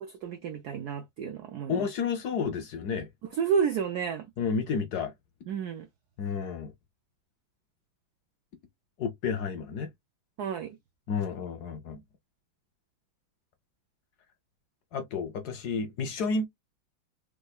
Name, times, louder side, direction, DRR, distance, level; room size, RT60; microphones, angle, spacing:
voice 1, 0.0-1.9 3.3-4.3 5.5-5.9 10.4-10.8, right 7 dB, 90° right, 0.8 m, -31 dB
voice 2, 1.7-3.1 4.4-5.1 6.2-6.7 9.0-9.9 11.1-12.0 14.9-16.5, left 5 dB, 65° left, 1.0 m, -31 dB
3.5 x 3.2 x 2.2 m
omnidirectional pair, 2.2 m